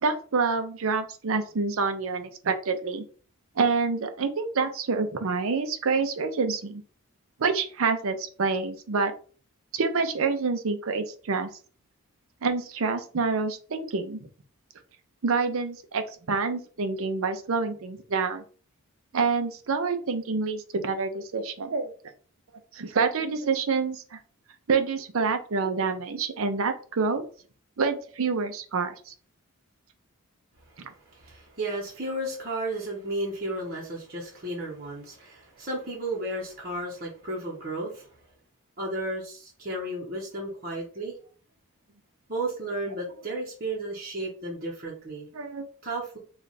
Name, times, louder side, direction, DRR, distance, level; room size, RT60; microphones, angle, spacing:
voice 1, 0.0-3.0 3.6-6.8 7.4-9.1 9.7-11.5 12.4-14.2 15.2-18.4 19.1-21.9 22.7-24.2 24.7-27.3 27.8-29.1 45.3-45.7, right 4 dB, 65° right, 8 dB, 0.5 m, -27 dB
voice 2, 30.8-38.1 38.8-41.2 42.3-45.3 45.8-46.2, right 1 dB, 40° right, -4 dB, 0.9 m, -33 dB
3.3 x 2.4 x 4.0 m, 0.41 s
head